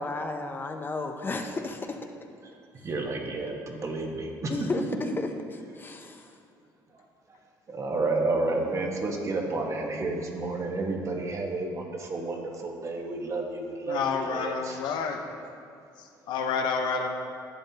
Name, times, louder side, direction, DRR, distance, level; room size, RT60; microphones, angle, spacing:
voice 1, 0.0-2.0 4.5-5.3 5.7-6.4, left 3 dB, 25° left, 5 dB, 0.7 m, -32 dB
voice 2, 2.4-4.5 6.9-7.4 7.7-14.8, right 2 dB, 40° right, 1 dB, 1.3 m, -31 dB
voice 3, 13.9-15.2 16.0-17.1, left 5 dB, 75° left, 4 dB, 0.9 m, -29 dB
11.0 x 7.6 x 2.9 m, 2.5 s
cardioid pair, 95°, 8 cm